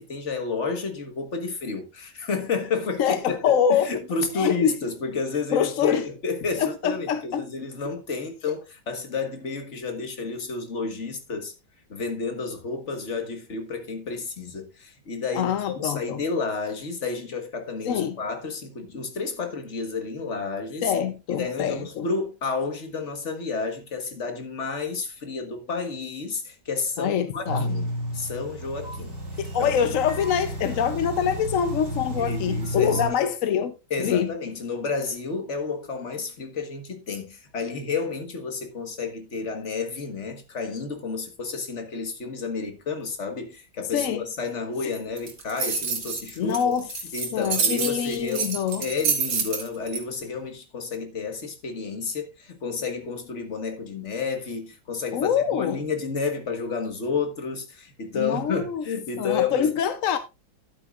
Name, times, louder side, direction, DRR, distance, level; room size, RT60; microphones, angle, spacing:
voice 1, 0.0-11.5 11.9-20.9 21.3-27.9 28.1-29.2 29.6-29.8 32.1-33.3 33.9-46.8 47.1-59.7, left 4 dB, 40° left, 1.7 m, -31 dB
voice 2, 3.0-3.9 4.3-4.8 5.5-6.1 6.6-7.5 15.3-16.2 17.9-18.2 20.8-22.1 27.0-27.7 29.4-33.7 34.0-34.3 43.9-44.2 46.4-46.9 47.3-48.8 55.1-55.8 58.1-58.8 59.2-60.2, left 8 dB, 65° left, 0.8 m, -25 dB
sound 1, 27.5-33.1, equal, 60° right, 4.3 m, -32 dB
sound 2, 45.2-50.0, right 6 dB, 85° right, 2.7 m, -27 dB
11.5 x 8.8 x 2.4 m
omnidirectional pair, 2.1 m